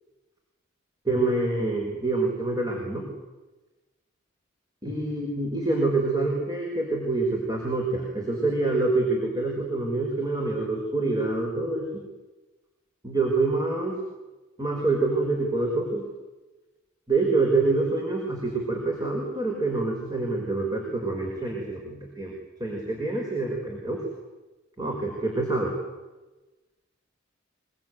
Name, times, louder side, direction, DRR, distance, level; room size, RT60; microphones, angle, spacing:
voice 1, 1.1-3.1 4.8-12.0 13.0-14.0 14.6-16.1 17.1-22.3 22.6-24.1 24.8-25.8, right 3 dB, 20° right, -1 dB, 5.3 m, -26 dB
24.0 x 24.0 x 9.6 m, 1.1 s
head